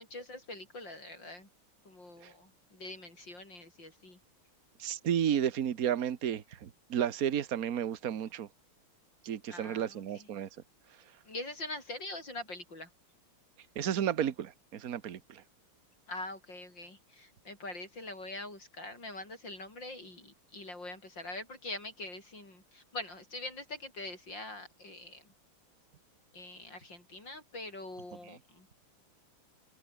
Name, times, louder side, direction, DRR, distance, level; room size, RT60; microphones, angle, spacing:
voice 1, 0.0-1.5 1.8-4.2 9.5-10.3 11.2-12.9 16.1-25.3 26.3-28.7, left 2 dB, 55° left, 8.4 m, -44 dB
voice 2, 4.8-8.5 9.2-10.5 13.7-15.4, right 9 dB, 45° right, 1.5 m, -32 dB
omnidirectional pair, 2.4 m